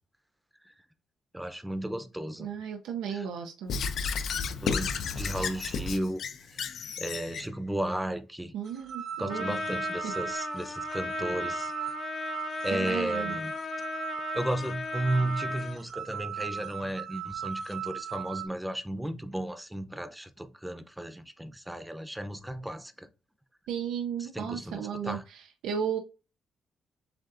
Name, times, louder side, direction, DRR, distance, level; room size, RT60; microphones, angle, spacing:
voice 1, 1.3-2.5 3.1-3.3 4.6-4.9 5.1-6.2 6.5-6.6 7.0-8.5 9.2-11.7 12.6-13.5 14.3-23.1 24.3-25.2, right 1 dB, 5° right, 0.7 m, -34 dB
voice 2, 2.4-3.7 8.5-9.6 10.0-10.1 12.7-13.3 23.7-26.0, right 8 dB, 90° right, 0.6 m, -34 dB
Squeak / Writing, 3.7-7.5, left 5 dB, 65° left, 0.6 m, -32 dB
sound 1, 8.7-18.5, right 9 dB, 60° right, 1.3 m, -38 dB
Trumpet, 9.3-15.8, left 4 dB, 45° left, 0.9 m, -37 dB
7.6 x 2.6 x 2.6 m
cardioid pair, 90°, 0 cm